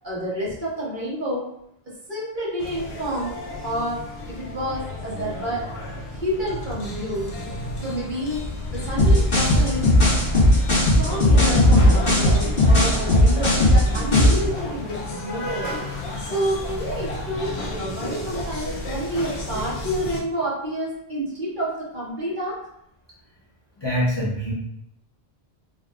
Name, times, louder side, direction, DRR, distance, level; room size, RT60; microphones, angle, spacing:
voice 1, 0.0-1.5 2.1-3.3 3.6-4.0 4.3-5.7 6.1-7.3 7.8-8.4 8.7-9.9 10.8-15.8 16.2-22.6, equal, 50° right, -7 dB, 1.6 m, -29 dB
sound 1, 2.6-20.2, left 1 dB, 85° left, 1.0 m, -32 dB
sound 2, 9.0-14.5, left 1 dB, 60° left, 1.7 m, -16 dB
voice 2, 23.8-24.5, equal, 30° left, -6 dB, 0.7 m, -24 dB
3.9 x 3.4 x 2.4 m, 0.76 s
omnidirectional pair, 1.1 m